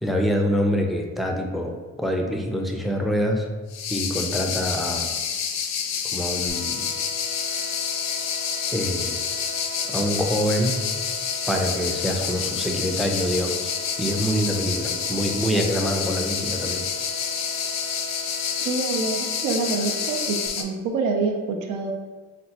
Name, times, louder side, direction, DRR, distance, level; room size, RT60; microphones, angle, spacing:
voice 1, 0.0-3.5 3.9-5.1 6.1-6.9 8.7-9.1 9.9-10.8 11.5-13.7 14.0-16.8, equal, ahead, 2 dB, 0.4 m, -25 dB
sound 1, 3.7-20.6, left 7 dB, 60° left, 0.4 m, -28 dB
sound 2, 6.5-20.5, left 1 dB, 45° right, 0.6 m, -39 dB
voice 2, 18.6-21.9, right 4 dB, 90° right, 3 dB, 0.5 m, -26 dB
4.2 x 2.0 x 2.8 m, 1.3 s
cardioid pair, 90°, 30 cm